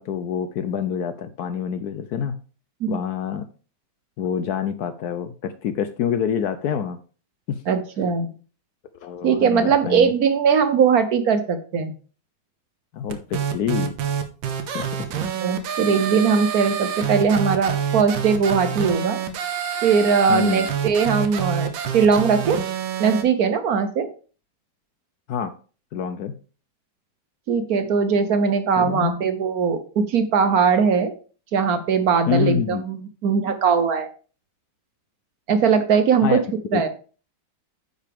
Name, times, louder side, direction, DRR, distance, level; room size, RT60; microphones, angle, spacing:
voice 1, 0.0-2.3 2.9-3.5 4.2-7.0 7.5-7.6 9.0-10.1 12.9-14.0 14.7-14.9 20.3-20.7 25.3-25.5 25.9-26.3 28.8-29.2 32.3-32.8 36.2-36.4 36.7-36.8, left 8 dB, 70° left, 11 dB, 1.0 m, -26 dB
voice 2, 7.7-8.3 9.2-11.9 15.4-19.2 19.8-22.6 23.0-24.1 27.5-31.1 31.5-34.1 35.5-36.4 36.7-36.9, right 6 dB, 60° right, 10 dB, 1.2 m, -20 dB
sound 1, 13.1-23.2, right 8 dB, 85° right, 1.7 m, -27 dB
9.7 x 6.7 x 3.5 m, 0.38 s
omnidirectional pair, 2.1 m